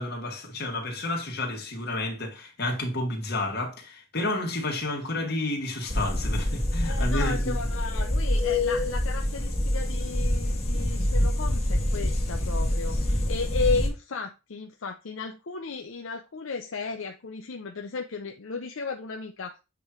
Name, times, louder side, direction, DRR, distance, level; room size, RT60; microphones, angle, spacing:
voice 1, 0.0-7.5, left 2 dB, 50° left, 1.9 m, -30 dB
sound 1, 5.9-13.9, left 1 dB, 30° left, 1.7 m, -26 dB
voice 2, 6.8-19.6, left 4 dB, 70° left, 0.6 m, -34 dB
7.7 x 3.1 x 5.0 m
head